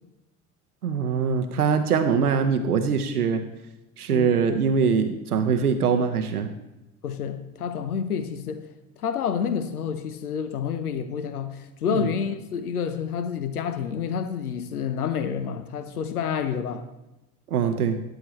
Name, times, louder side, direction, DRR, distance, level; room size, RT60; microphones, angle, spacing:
voice 1, 0.8-3.4 4.0-6.5 11.9-12.1 17.5-18.0, right 6 dB, 85° right, 0.7 m, -23 dB
voice 2, 7.0-8.6 9.0-16.8, left 7 dB, 85° left, 0.8 m, -29 dB
12.5 x 9.9 x 3.1 m
figure-of-eight pair, 65°, 44 cm